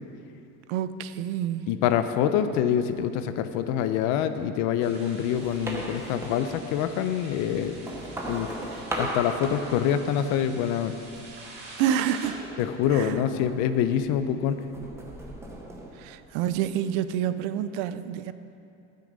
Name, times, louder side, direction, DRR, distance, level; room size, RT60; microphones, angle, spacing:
voice 1, 0.7-1.7 11.8-12.4 12.9-13.1 16.0-18.3, right 10 dB, 90° right, 13 dB, 0.6 m, -28 dB
voice 2, 1.7-7.7 8.3-8.5 9.0-10.9 12.6-14.6, left 9 dB, 60° left, 10 dB, 0.7 m, -25 dB
sound 1, 4.8-12.3, right 2 dB, 30° right, 2.1 m, -46 dB
sound 2, 5.3-7.0 7.5-10.5 10.8-11.4 12.2-14.1 14.5-16.6, right 1 dB, 10° right, 0.9 m, -37 dB
17.0 x 6.5 x 5.3 m, 2.7 s
cardioid pair, 175°, 33 cm